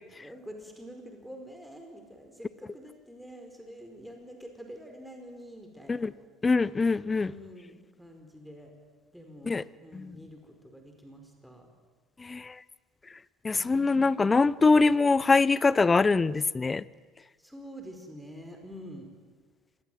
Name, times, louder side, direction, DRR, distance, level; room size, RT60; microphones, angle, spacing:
voice 1, 0.2-6.1 7.2-8.7 9.1-11.7 13.5-14.0 17.4-19.1, equal, ahead, 3 dB, 4.7 m, -47 dB
voice 2, 6.4-7.3 9.5-9.6 9.9-10.2 12.2-12.5 13.4-16.8, left 4 dB, 25° left, 21 dB, 0.8 m, -23 dB
24.5 x 20.0 x 9.3 m, 1.4 s
hypercardioid pair, 70°, 0 cm